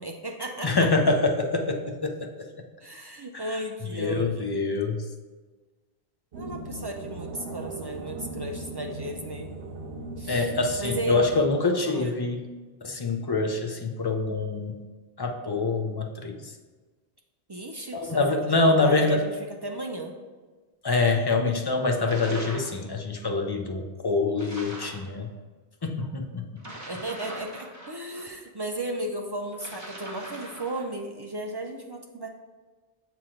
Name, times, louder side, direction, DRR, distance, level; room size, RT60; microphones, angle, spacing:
voice 1, 0.0-0.9 2.8-4.6 6.3-9.5 10.2-10.5 10.8-11.3 11.9-12.1 17.5-18.2 18.5-20.1 26.9-32.3, right 1 dB, 40° right, 2 dB, 0.3 m, -35 dB
voice 2, 0.6-2.5 3.3-3.4 4.0-5.0 10.3-12.4 12.8-14.8 15.2-16.5 17.9-19.3 20.8-25.3 25.8-26.5, left 3 dB, 30° left, 3 dB, 0.5 m, -25 dB
sound 1, 6.3-11.5, right 2 dB, 85° right, 0.9 m, -38 dB
sound 2, 22.1-22.8 24.4-25.1 26.6-28.3 29.5-30.9, right 1 dB, 15° right, 1.0 m, -41 dB
7.3 x 3.0 x 4.9 m, 1.3 s
omnidirectional pair, 1.0 m